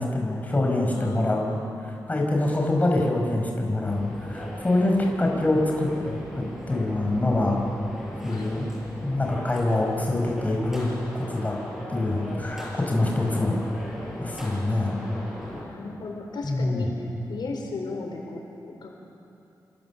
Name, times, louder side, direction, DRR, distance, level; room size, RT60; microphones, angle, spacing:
voice 1, 0.0-1.6 2.1-7.6 8.2-8.7 9.0-11.5 11.9-13.6 14.2-15.0 16.4-16.8, left 2 dB, 20° left, 0 dB, 4.8 m, -25 dB
voice 2, 0.9-1.9 8.2-8.6 15.5-18.9, left 3 dB, 80° left, 1 dB, 4.0 m, -36 dB
sound 1, 3.8-15.6, equal, 5° right, 7.8 m, -39 dB
28.0 x 26.0 x 7.1 m, 2.7 s
wide cardioid pair, 140°, 8 cm